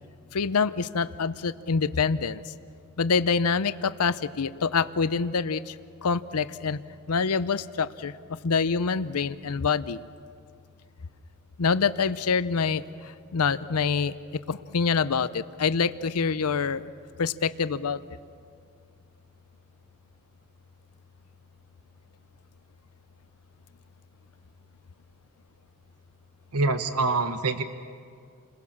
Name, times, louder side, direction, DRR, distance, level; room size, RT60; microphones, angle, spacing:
voice 1, 0.3-2.4 3.0-5.6 6.0-6.8 7.1-8.1 8.4-10.0 11.6-12.8 13.3-14.1 14.5-16.8 17.2-18.0, left 5 dB, 80° left, 14 dB, 0.6 m, -25 dB
voice 2, 26.5-27.6, right 3 dB, 85° right, 9 dB, 1.1 m, -25 dB
29.5 x 21.0 x 7.3 m, 2.3 s
head